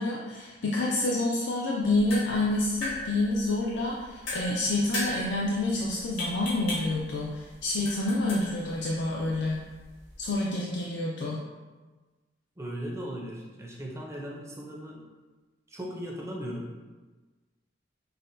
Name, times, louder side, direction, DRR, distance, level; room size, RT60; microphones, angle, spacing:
voice 1, 0.0-9.6 10.2-11.4, left 2 dB, 65° left, -3 dB, 0.4 m, -28 dB
sound 1, 1.8-10.4, left 1 dB, 90° left, 1.3 m, -38 dB
voice 2, 12.6-15.0 15.7-16.7, equal, 15° right, -2 dB, 0.5 m, -37 dB
5.4 x 2.2 x 2.5 m, 1.3 s
head